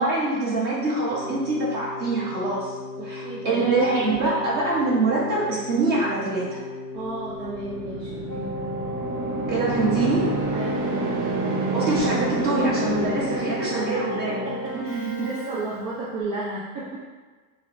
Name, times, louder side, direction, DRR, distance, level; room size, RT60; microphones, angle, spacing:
voice 1, 0.0-2.8 3.0-6.6 9.5-10.3 11.7-14.4 14.7-15.3, right 2 dB, 20° right, -7 dB, 1.1 m, -24 dB
Keyboard (musical), 1.1-16.1, left 1 dB, 10° left, 0.4 m, -34 dB
voice 2, 3.0-3.6 6.9-8.6 10.5-11.1 13.3-17.1, right 2 dB, 40° right, -8 dB, 0.7 m, -33 dB
sound 1, 7.2-14.2, right 2 dB, 70° right, 1.0 m, -28 dB
5.8 x 2.1 x 2.6 m, 1.4 s
supercardioid pair, 165°, 46 cm